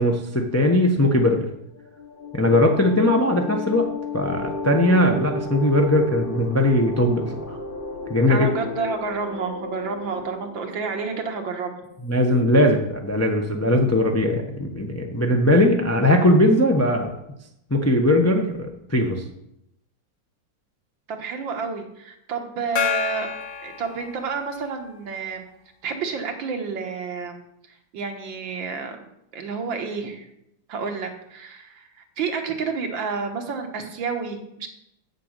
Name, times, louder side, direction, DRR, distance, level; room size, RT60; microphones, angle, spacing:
voice 1, 0.0-1.5 2.3-3.9 4.1-7.6 8.1-8.5 12.0-17.1 17.7-19.2, left 1 dB, 20° left, 2 dB, 0.4 m, -19 dB
sound 1, 1.7-12.0, left 2 dB, 35° left, 1.0 m, -34 dB
voice 2, 8.3-11.7 21.1-23.3 23.6-25.4 25.8-27.4 27.9-29.1 29.3-30.3 30.7-31.9 32.2-34.7, right 5 dB, 80° right, 4 dB, 2.0 m, -30 dB
Gong, 22.8-24.8, left 8 dB, 60° left, 1.0 m, -29 dB
8.2 x 6.7 x 6.6 m, 0.81 s
omnidirectional pair, 2.0 m